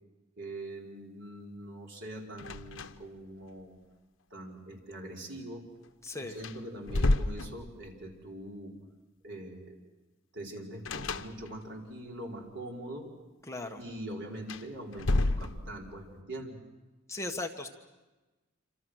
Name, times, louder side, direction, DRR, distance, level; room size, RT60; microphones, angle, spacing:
voice 1, 0.4-3.8 4.3-5.6 6.1-8.7 9.2-9.8 10.3-13.1 13.8-16.6, right 1 dB, 60° right, -1 dB, 4.8 m, -43 dB
sound 1, 2.4-3.2 3.5-3.6 5.8-5.9 6.3-8.1 10.8-11.8 14.3-16.0, left 2 dB, 75° left, 1.0 m, -31 dB
voice 2, 6.0-6.4 13.5-13.8 17.1-17.7, left 2 dB, 15° left, 3 dB, 1.4 m, -37 dB
27.5 x 26.5 x 6.4 m, 1.1 s
head